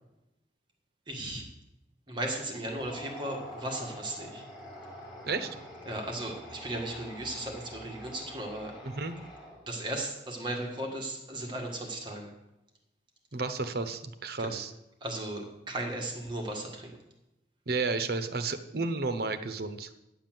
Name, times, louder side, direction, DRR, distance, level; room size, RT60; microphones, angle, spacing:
voice 1, 1.1-1.5 2.1-4.4 5.9-8.7 9.7-12.3 14.4-14.6 15.0-17.0, right 1 dB, 25° right, 0 dB, 1.7 m, -36 dB
sound 1, 2.6-9.8, equal, 30° left, 3.7 m, -46 dB
voice 2, 8.8-9.1 13.3-14.7 17.7-19.9, right 3 dB, 60° right, 10 dB, 0.9 m, -32 dB
10.0 x 7.2 x 7.5 m, 0.92 s
head